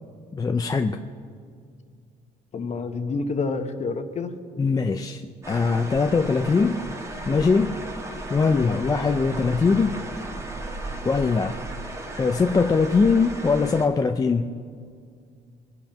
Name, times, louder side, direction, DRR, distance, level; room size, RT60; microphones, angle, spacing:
voice 1, 0.3-1.1 4.6-6.8 7.3-7.8 8.3-10.0 11.0-11.6 12.1-14.6, left 4 dB, 20° left, 6 dB, 0.5 m, -22 dB
voice 2, 2.5-4.3 8.5-8.8, left 4 dB, 40° left, 8 dB, 1.2 m, -29 dB
sound 1, 5.4-13.9, right 2 dB, 15° right, 1.7 m, -35 dB
22.0 x 9.1 x 5.8 m, 2.2 s
cardioid pair, 110°, 17 cm